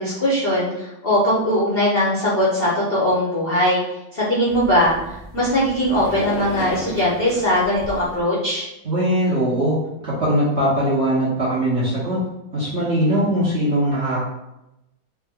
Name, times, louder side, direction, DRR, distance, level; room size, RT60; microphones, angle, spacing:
voice 1, 0.0-3.8 4.1-8.7, equal, 60° left, -7 dB, 0.6 m, -20 dB
sound 1, 4.5-8.2, left 3 dB, 85° left, 1.4 m, -34 dB
voice 2, 8.8-9.8 10.0-12.2 12.5-14.2, right 1 dB, 50° right, -8 dB, 0.8 m, -20 dB
4.4 x 2.1 x 3.5 m, 0.90 s
omnidirectional pair, 2.2 m